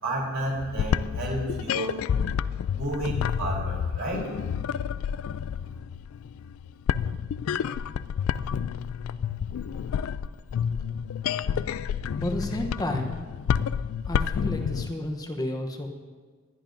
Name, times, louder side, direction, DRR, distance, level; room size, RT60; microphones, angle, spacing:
voice 1, 0.0-1.9 2.7-4.3, right 1 dB, 70° right, -3 dB, 3.6 m, -31 dB
sound 1, 0.6-14.9, left 7 dB, 80° left, 0.3 m, -29 dB
voice 2, 12.1-13.2 14.1-15.9, left 1 dB, 20° left, 3 dB, 0.8 m, -31 dB
20.5 x 11.0 x 2.6 m, 1.5 s
head